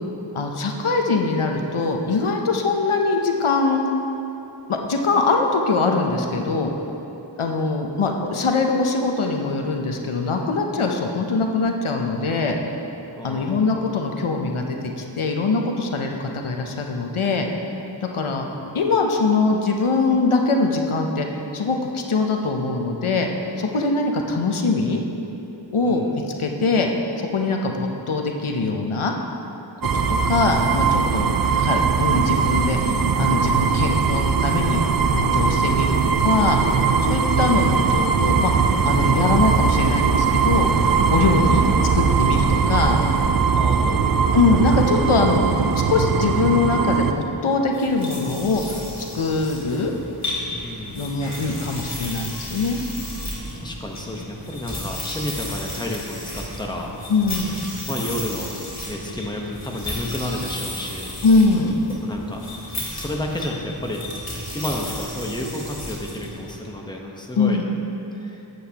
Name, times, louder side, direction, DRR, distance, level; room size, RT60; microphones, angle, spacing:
voice 1, 0.3-3.8 4.7-6.7 7.4-12.6 13.2-17.5 18.0-18.5 18.7-21.3 21.5-23.3 23.6-25.0 25.7-26.0 26.4-26.9 27.3-29.1 29.9-31.3 31.6-34.8 35.1-36.6 37.0-40.7 41.1-41.6 41.9-43.0 44.3-45.5 45.9-48.7 49.1-49.9 51.0-52.8 57.1-57.6 61.2-61.8 67.4-67.6, left 3 dB, 85° left, 2 dB, 0.8 m, -22 dB
voice 2, 13.2-13.6 25.8-26.2 31.3-31.5 43.5-44.4 50.6-51.3 53.6-56.9 57.9-58.5 58.8-61.2 62.0-64.1 64.5-67.6 68.1-68.5, left 1 dB, 10° left, 0 dB, 0.9 m, -31 dB
sound 1, 29.8-47.1, right 6 dB, 50° right, 0.5 m, -20 dB
sound 2, 47.7-66.6, left 1 dB, 35° left, 2.1 m, -33 dB
12.5 x 7.9 x 2.9 m, 3.0 s
wide cardioid pair, 40°, 48 cm